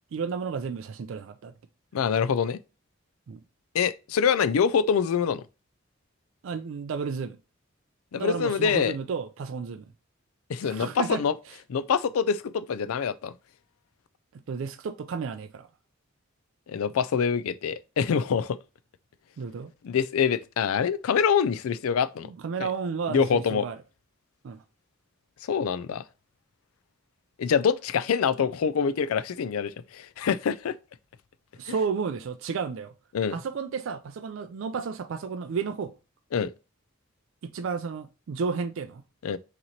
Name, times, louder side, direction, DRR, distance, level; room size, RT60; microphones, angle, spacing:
voice 1, 0.1-1.5 3.3-3.4 6.4-7.4 8.1-9.9 10.6-11.2 14.3-15.7 19.4-19.7 22.2-23.8 24.4-24.6 31.6-32.9 33.3-35.9 37.4-39.0, right 5 dB, 65° right, 0.3 m, -32 dB
voice 2, 1.9-2.6 3.7-5.4 8.1-8.9 10.5-11.3 11.7-13.3 16.7-18.6 19.8-22.3 22.6-22.7 23.1-23.7 25.4-26.0 27.4-30.8 33.1-33.3 36.3-36.5 39.2-39.4, left 6 dB, 85° left, 0.4 m, -25 dB
5.7 x 3.0 x 2.6 m
head